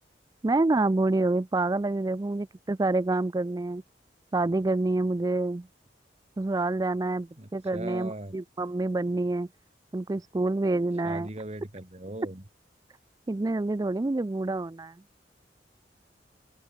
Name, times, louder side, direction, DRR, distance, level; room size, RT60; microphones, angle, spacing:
voice 1, 0.4-3.8 4.3-5.7 6.4-9.5 9.9-11.3 13.3-15.0, right 2 dB, 20° right, 0.4 m, -27 dB
voice 2, 7.4-8.4 11.0-12.4, right 1 dB, 40° right, 2.2 m, -39 dB
head